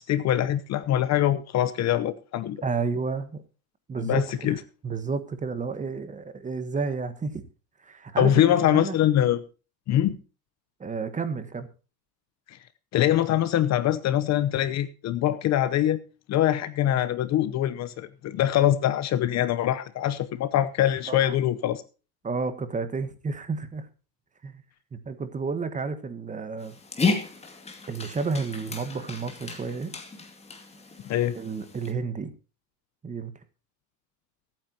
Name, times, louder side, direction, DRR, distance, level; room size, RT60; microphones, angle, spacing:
voice 1, 0.0-2.6 4.0-4.6 8.2-9.4 9.9-10.2 12.5-12.6 12.9-16.0 16.3-21.8 31.0-31.4, left 12 dB, 35° left, 0.8 m, -23 dB
voice 2, 2.6-3.4 3.9-4.2 4.8-7.4 7.8-9.0 10.8-11.7 21.1-21.4 22.2-23.9 24.4-24.6 24.9-26.7 27.9-29.9 31.3-32.3 33.0-33.3, right 4 dB, 15° right, 1.3 m, -31 dB
Dog, 26.6-31.9, left 4 dB, 15° left, 2.3 m, -33 dB
23.5 x 9.1 x 2.9 m
supercardioid pair, 140°, 44 cm